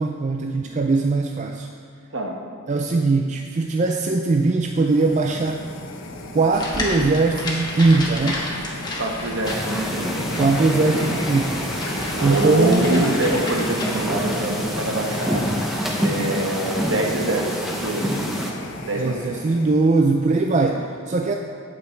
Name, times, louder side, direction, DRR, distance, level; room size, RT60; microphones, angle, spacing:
voice 1, 0.0-1.7 2.7-5.7 6.3-8.5 10.4-11.7 12.2-13.1 19.0-21.3, right 3 dB, 35° right, 3 dB, 0.4 m, -20 dB
sound 1, 4.7-20.1, left 2 dB, 65° left, 0.9 m, -34 dB
sound 2, 6.5-14.4, left 1 dB, 20° left, 1.2 m, -32 dB
voice 2, 9.0-10.2 12.2-15.5 16.0-18.2 18.9-19.2, right 2 dB, 65° right, 2 dB, 1.2 m, -25 dB
sound 3, 9.4-18.5, equal, ahead, 0.9 m, -27 dB
8.6 x 8.3 x 4.4 m, 2.1 s
head